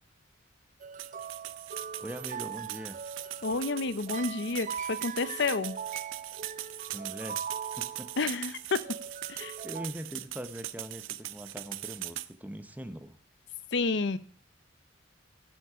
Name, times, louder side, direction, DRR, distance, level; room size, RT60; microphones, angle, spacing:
sound 1, 0.8-8.5 8.8-9.9, right 7 dB, 40° right, 0.4 m, -41 dB
sound 2, 1.0-12.3, right 14 dB, 80° right, 0.6 m, -40 dB
voice 1, 2.0-3.0 6.9-7.4 7.8-8.1 9.6-13.2, equal, 10° right, 9 dB, 0.8 m, -41 dB
voice 2, 3.4-5.8 8.2-8.8 9.3-9.5 13.7-14.2, left 3 dB, 60° left, 14 dB, 0.7 m, -30 dB
16.0 x 7.1 x 4.9 m, 0.41 s
head